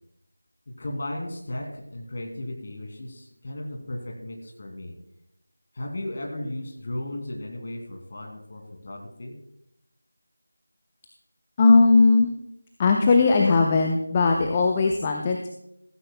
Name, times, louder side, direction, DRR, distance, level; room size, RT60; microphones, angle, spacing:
voice 1, 0.7-4.9 5.7-9.3, left 1 dB, 35° left, 2 dB, 2.5 m, -35 dB
voice 2, 11.6-12.3 12.8-15.5, left 3 dB, 15° left, 3 dB, 0.6 m, -18 dB
15.0 x 15.0 x 2.2 m, 0.82 s
figure-of-eight pair, 165°, 0 cm